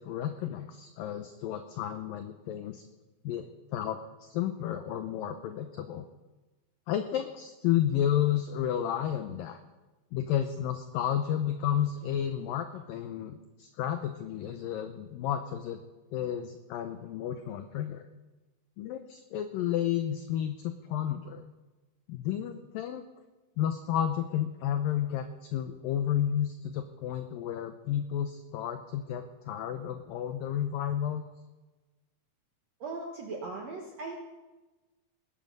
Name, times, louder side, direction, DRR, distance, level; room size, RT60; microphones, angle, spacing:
voice 1, 0.0-2.8 3.2-6.1 6.9-9.6 10.1-15.8 16.1-18.1 18.8-21.5 22.1-23.0 23.6-31.2, left 10 dB, 85° left, 8 dB, 2.0 m, -32 dB
voice 2, 32.8-34.2, right 3 dB, 65° right, 1 dB, 1.6 m, -38 dB
19.5 x 11.0 x 5.3 m, 1.2 s
omnidirectional pair, 5.0 m